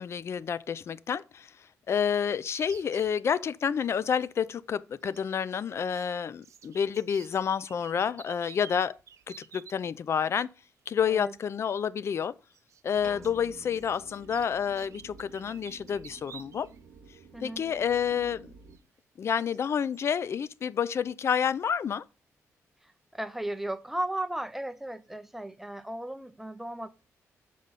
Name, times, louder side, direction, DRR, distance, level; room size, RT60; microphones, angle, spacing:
voice 1, 0.0-1.5 1.9-9.0 9.3-10.5 10.9-12.3 12.8-16.7 17.4-18.5 19.2-22.0, left 7 dB, 50° left, 0.4 m, -29 dB
sound 1, 2.5-3.1 5.0-6.1 6.3-9.8 11.2-11.3 12.5-16.8 17.1-17.2 18.7-18.8 19.4-19.6 19.9-20.2, right 8 dB, 65° right, 0.5 m, -52 dB
voice 2, 11.0-11.3 17.3-17.6 22.8-26.9, right 1 dB, 5° right, 0.6 m, -35 dB
sound 2, 12.9-18.8, right 5 dB, 90° right, 0.9 m, -52 dB
Piano, 13.0-15.3, left 1 dB, 30° left, 2.3 m, -52 dB
6.7 x 4.9 x 4.1 m
cardioid pair, 90°, 6 cm